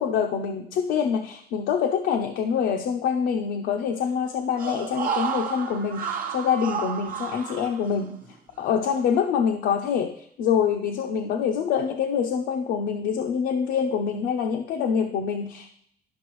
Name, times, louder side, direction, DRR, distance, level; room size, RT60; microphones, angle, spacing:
voice 1, 0.0-8.2 8.6-15.7, left 7 dB, 85° left, 3 dB, 0.6 m, -25 dB
sound 1, 4.6-8.3 8.6-8.7, right 7 dB, 60° right, 0.8 m, -31 dB
11.0 x 5.8 x 3.1 m, 0.69 s
cardioid pair, 105°, 17 cm